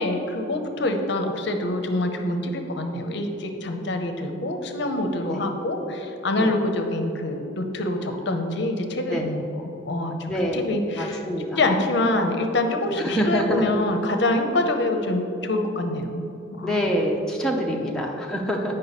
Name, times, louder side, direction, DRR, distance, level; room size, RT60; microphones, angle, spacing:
voice 1, 0.0-9.5 9.8-11.2 11.6-16.2 16.6-16.7 17.7-17.8 18.7-18.8, left 2 dB, 55° left, 5 dB, 0.6 m, -25 dB
voice 2, 10.3-10.7 10.9-11.6 13.0-13.8 16.6-18.7, equal, 5° left, -2 dB, 0.5 m, -26 dB
8.3 x 5.4 x 4.1 m, 3.0 s
head